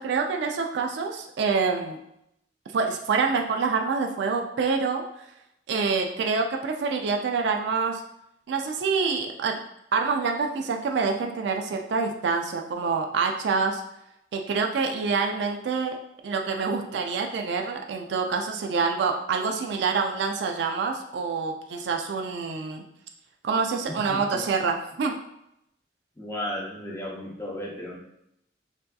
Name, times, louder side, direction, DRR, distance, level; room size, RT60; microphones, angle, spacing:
voice 1, 0.0-2.0 2.7-5.0 5.7-8.0 8.5-9.6 9.9-13.8 14.3-16.0 16.2-22.8 23.4-25.1, right 5 dB, 65° right, 3 dB, 0.3 m, -26 dB
voice 2, 23.9-24.4 26.2-28.0, left 1 dB, 15° left, -4 dB, 0.6 m, -34 dB
3.3 x 2.6 x 2.2 m, 0.80 s
head